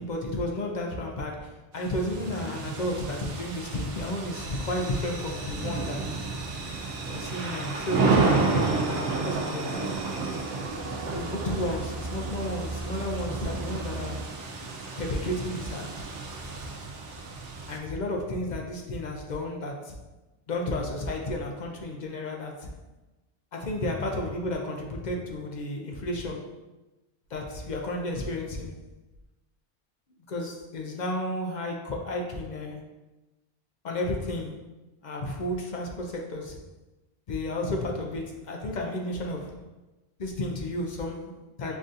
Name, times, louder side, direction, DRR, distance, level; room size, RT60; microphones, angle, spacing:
voice 1, 0.0-6.1 7.1-9.9 11.1-14.3 15.0-16.0 17.7-20.0 20.5-22.7 23.5-26.5 27.3-28.7 30.3-32.8 33.8-34.6 35.0-36.6 37.3-39.6 40.2-41.8, left 1 dB, 55° left, 1 dB, 0.5 m, -32 dB
sound 1, 1.7-17.8, right 3 dB, 85° right, 1.0 m, -31 dB
sound 2, 4.3-14.2, right 3 dB, 60° right, 0.6 m, -40 dB
6.0 x 2.6 x 2.5 m, 1.1 s
omnidirectional pair, 1.2 m